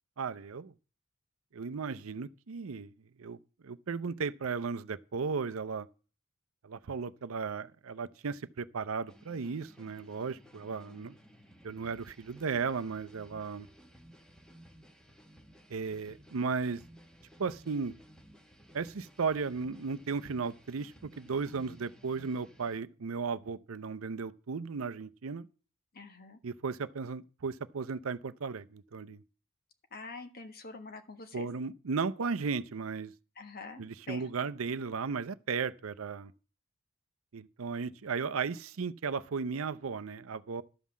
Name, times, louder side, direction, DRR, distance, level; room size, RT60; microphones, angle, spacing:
voice 1, 0.2-0.7 1.5-2.9 3.2-3.4 3.6-5.9 6.6-11.2 11.6-13.7 15.7-16.8 17.4-18.0 18.7-25.5 26.4-29.2 31.3-33.1 33.8-36.3 37.3-40.6, right 5 dB, 70° right, 0.6 m, -35 dB
sound 1, 9.1-22.8, equal, 5° left, 1.2 m, -57 dB
voice 2, 25.9-26.4 29.9-31.5 33.3-34.3, left 3 dB, 45° left, 1.5 m, -46 dB
12.5 x 5.6 x 7.3 m
head